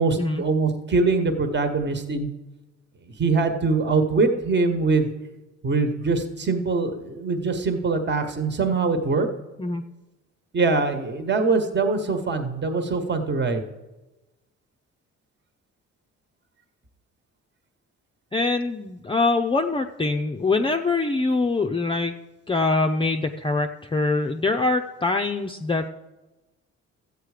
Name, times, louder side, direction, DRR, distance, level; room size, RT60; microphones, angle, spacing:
voice 1, 0.0-2.3 3.2-5.1 5.6-9.3 10.5-13.6, right 3 dB, 35° right, 6 dB, 1.4 m, -23 dB
voice 2, 18.3-22.1 22.5-25.8, left 3 dB, 15° left, 3 dB, 0.6 m, -24 dB
13.0 x 8.3 x 5.0 m, 1.1 s
cardioid pair, 90°, 30 cm